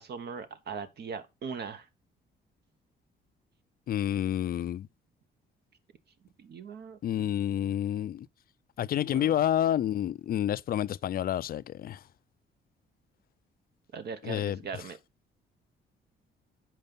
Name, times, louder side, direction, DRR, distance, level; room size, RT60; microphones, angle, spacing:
voice 1, 0.0-1.9 6.4-7.8 9.1-9.3 13.9-15.0, right 5 dB, 55° right, 0.9 m, -40 dB
voice 2, 3.9-4.9 7.0-8.3 8.8-12.0 14.2-14.6, left 11 dB, 50° left, 0.4 m, -29 dB
5.5 x 4.6 x 5.3 m
cardioid pair, 90°, 20 cm